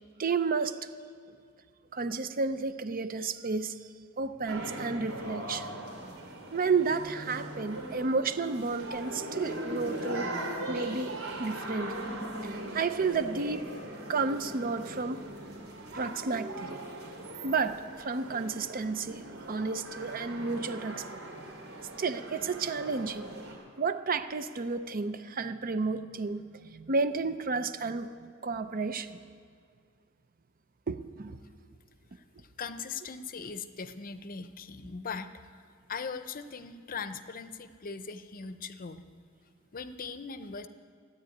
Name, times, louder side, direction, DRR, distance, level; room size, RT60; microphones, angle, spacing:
voice 1, 0.2-0.8 1.9-3.7 4.2-5.7 6.5-10.3 10.7-11.1 11.4-12.0 12.5-13.6 14.1-15.2 15.9-16.8 17.4-19.2 19.5-21.0 22.0-23.3 23.8-28.1 28.4-29.2 30.9-31.4, right 4 dB, 45° right, 11 dB, 0.6 m, -31 dB
sound 1, 4.5-23.5, right 1 dB, 85° right, 3.0 m, -40 dB
voice 2, 32.1-35.6 35.9-39.0 39.7-40.7, left 5 dB, 45° left, 11 dB, 0.6 m, -40 dB
13.0 x 9.8 x 9.2 m, 2.2 s
head